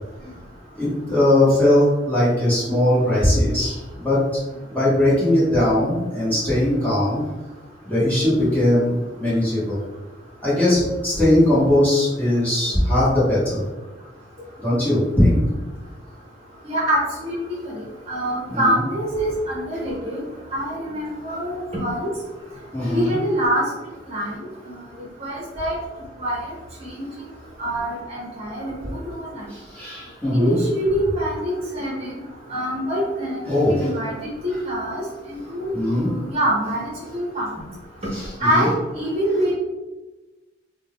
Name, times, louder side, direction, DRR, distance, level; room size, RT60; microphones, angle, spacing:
voice 1, 0.7-4.4 4.7-7.2 7.8-9.8 10.4-13.7 14.6-15.4 18.5-18.7 22.7-23.1 29.5-30.6 33.5-33.9 35.7-36.1 38.1-38.7, left 1 dB, 10° left, -10 dB, 1.2 m, -19 dB
voice 2, 16.6-17.4 18.1-20.2 20.5-22.1 22.9-23.6 24.1-24.4 24.6-24.7 25.2-25.8 26.2-26.3 26.8-27.1 27.6-29.4 30.3-32.2 32.5-34.1 34.4-37.5 38.4-39.5, equal, 35° right, -5 dB, 0.9 m, -25 dB
2.6 x 2.3 x 3.6 m, 1.1 s
head